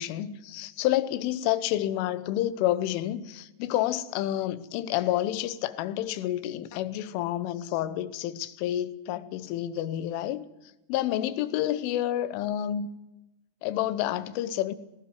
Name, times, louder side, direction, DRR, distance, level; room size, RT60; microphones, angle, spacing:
voice 1, 0.0-10.5 10.9-12.9 13.6-14.7, left 13 dB, 75° left, 3.3 m, -29 dB
18.5 x 16.5 x 9.4 m
omnidirectional pair, 6.0 m